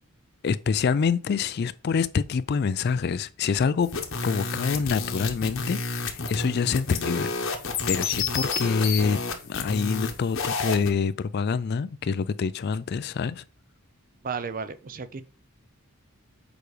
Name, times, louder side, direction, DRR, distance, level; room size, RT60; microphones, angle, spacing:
voice 1, 0.4-3.9 4.2-7.3 7.9-9.2 9.4-13.4, left 5 dB, 50° left, 0.3 m, -26 dB
sound 1, 3.8-10.9, left 4 dB, 65° left, 1.1 m, -30 dB
voice 2, 14.2-15.2, right 5 dB, 40° right, 0.5 m, -33 dB
6.8 x 4.9 x 3.2 m
head